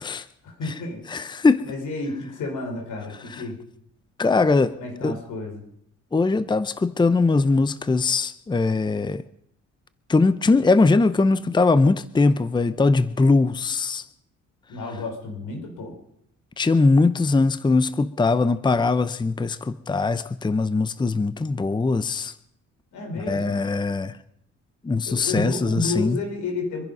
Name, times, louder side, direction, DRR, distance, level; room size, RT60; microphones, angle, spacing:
voice 1, 0.4-1.0 1.6-3.6 4.8-5.6 14.7-16.0 22.9-23.7 25.1-26.8, left 3 dB, 85° left, 3 dB, 4.6 m, -31 dB
voice 2, 1.1-1.6 4.2-4.8 5.0-5.2 6.1-9.2 10.1-14.0 16.6-22.3 23.2-24.2 24.8-26.2, left 3 dB, 15° left, 14 dB, 0.7 m, -21 dB
25.0 x 10.5 x 5.4 m, 0.70 s
cardioid pair, 90°, 30 cm